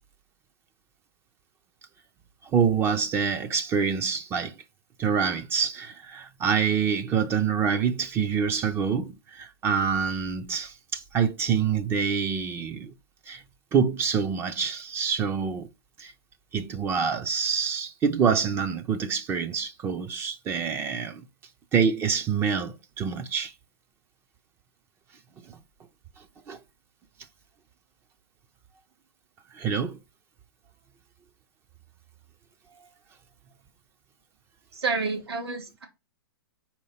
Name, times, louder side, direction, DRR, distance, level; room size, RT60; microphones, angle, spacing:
voice 1, 2.5-4.5 5.0-12.9 13.3-13.4 13.7-15.7 16.0-16.1 16.5-21.2 21.7-23.5 25.5-25.6 26.5-26.6 29.5-30.0, right 6 dB, 20° right, 0.5 m, -26 dB
voice 2, 34.7-35.9, right 4 dB, 85° right, 2.6 m, -29 dB
4.6 x 4.4 x 5.6 m
hypercardioid pair, 140°, 13 cm